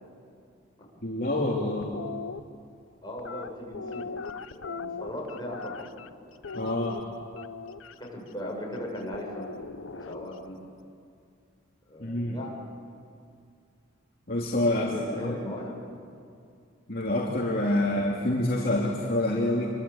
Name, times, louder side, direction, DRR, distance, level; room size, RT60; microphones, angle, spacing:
voice 1, 1.0-2.0 6.5-7.0 12.0-12.4 14.3-14.9 15.2-15.3 16.9-19.7, left 1 dB, 45° left, -3 dB, 2.9 m, -27 dB
sound 1, 1.8-2.4 3.2-6.1 6.4-7.9 9.1-10.5, left 4 dB, 85° left, 0.9 m, -39 dB
voice 2, 3.0-4.1 4.5-5.7 8.0-9.5 9.9-10.6 11.9-12.6 14.7-15.8, left 1 dB, 20° left, -2 dB, 7.1 m, -38 dB
27.5 x 24.0 x 8.7 m, 2.4 s
head